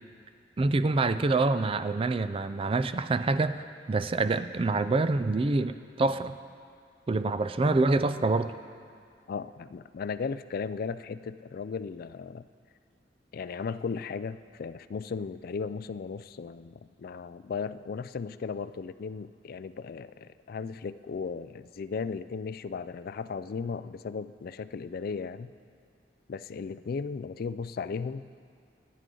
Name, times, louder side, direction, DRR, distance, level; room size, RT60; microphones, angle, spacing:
voice 1, 0.6-6.4 7.1-8.5, right 3 dB, 30° right, 12 dB, 0.4 m, -26 dB
voice 2, 9.3-12.4 13.3-25.5 26.3-28.2, left 5 dB, 55° left, 14 dB, 0.3 m, -36 dB
25.5 x 9.5 x 3.8 m, 2.3 s
head